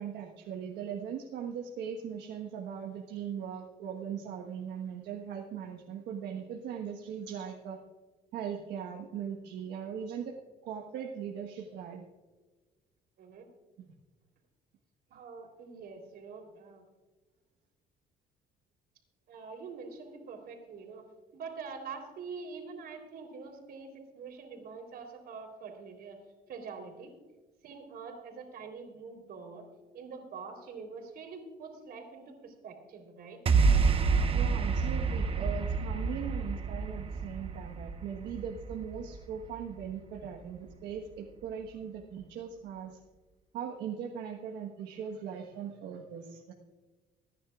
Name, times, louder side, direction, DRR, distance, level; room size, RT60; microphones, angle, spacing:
voice 1, 0.0-7.8 8.3-10.3 10.6-12.0 13.8-13.9 34.3-43.0 43.5-46.5, right 8 dB, 85° right, 0 dB, 1.3 m, -39 dB
voice 2, 15.1-16.9 19.3-21.1 21.3-26.2 26.5-27.1 27.6-29.7 29.9-33.4, right 5 dB, 65° right, 3 dB, 3.5 m, -45 dB
sound 1, 33.5-39.9, right 4 dB, 35° right, 1.0 m, -28 dB
25.5 x 10.0 x 2.4 m, 1.2 s
cardioid pair, 110°, 17 cm